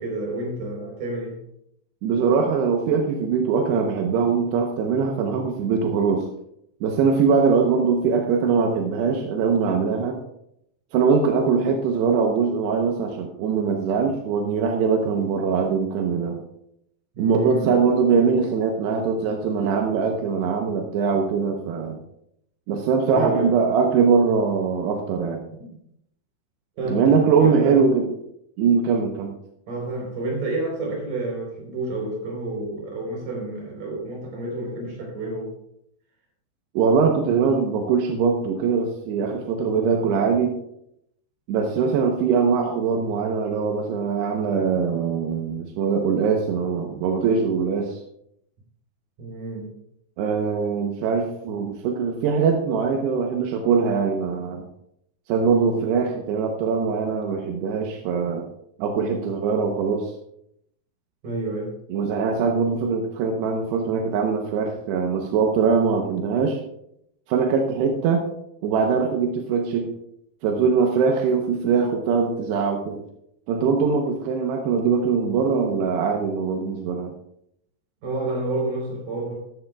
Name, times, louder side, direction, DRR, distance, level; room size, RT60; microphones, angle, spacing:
voice 1, 0.0-1.4 17.1-17.8 23.1-23.5 25.5-25.8 26.8-27.8 29.7-35.5 49.2-49.7 61.2-61.7 78.0-79.3, right 2 dB, 50° right, -1 dB, 5.6 m, -29 dB
voice 2, 2.0-6.3 6.8-10.2 10.9-16.4 17.2-22.0 22.7-25.4 26.9-28.1 28.6-29.3 36.7-40.5 41.5-48.0 50.2-54.6 55.3-58.5 58.8-60.1 61.9-66.6 67.3-68.3 68.6-69.9 70.4-73.0 73.5-77.1, right 5 dB, 85° right, 2 dB, 3.1 m, -22 dB
14.5 x 11.5 x 2.4 m, 0.75 s
omnidirectional pair, 4.7 m